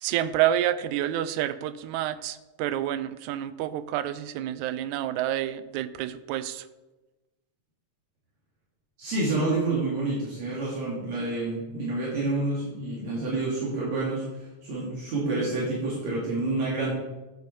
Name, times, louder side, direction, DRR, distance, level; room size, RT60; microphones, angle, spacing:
voice 1, 0.0-6.7, right 12 dB, 85° right, 14 dB, 2.0 m, -28 dB
voice 2, 9.0-16.9, right 2 dB, 65° right, -7 dB, 3.7 m, -28 dB
10.5 x 7.9 x 4.4 m, 1.1 s
omnidirectional pair, 3.3 m